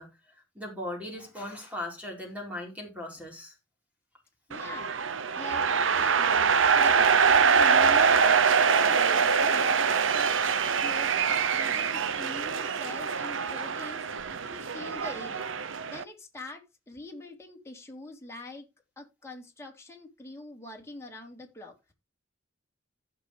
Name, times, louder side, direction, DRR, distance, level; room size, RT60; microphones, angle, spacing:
voice 1, 0.0-3.5, left 1 dB, 5° right, 4.4 m, -39 dB
voice 2, 4.5-4.9 5.4-5.7 5.9-14.0 14.5-15.5 15.9-18.7 19.0-21.9, left 2 dB, 15° left, 3.3 m, -44 dB
sound 1, 4.5-16.0, right 6 dB, 70° right, 0.8 m, -24 dB
15.5 x 7.1 x 3.3 m
head